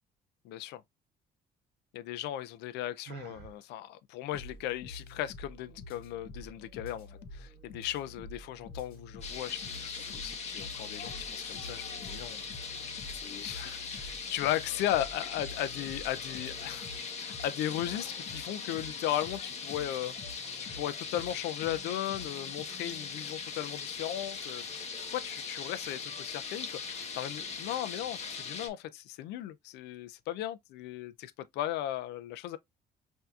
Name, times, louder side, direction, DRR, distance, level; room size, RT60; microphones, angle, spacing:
voice 1, 0.4-0.8 1.9-12.4 12.7-12.8 13.1-16.9 17.2-24.7 25.1-32.6, left 12 dB, 80° left, 0.4 m, -36 dB
Sigh, 3.1-3.6, right 9 dB, 75° right, 0.8 m, -46 dB
sound 1, 4.3-22.6, left 2 dB, 60° left, 1.5 m, -48 dB
sound 2, 9.2-28.7, left 5 dB, 40° left, 1.1 m, -40 dB
5.6 x 2.7 x 2.3 m
cardioid pair, 110°, 17 cm